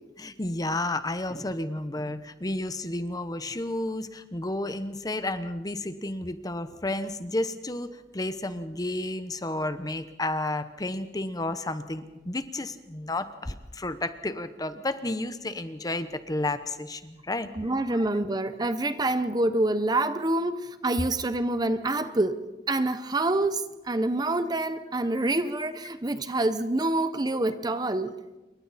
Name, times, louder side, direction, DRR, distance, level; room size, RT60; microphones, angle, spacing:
voice 1, 0.2-17.5 17.9-18.1 18.6-18.7, left 2 dB, 20° left, 0.9 m, -32 dB
voice 2, 17.5-28.2, right 2 dB, 20° right, 0.8 m, -27 dB
28.0 x 23.5 x 4.2 m
head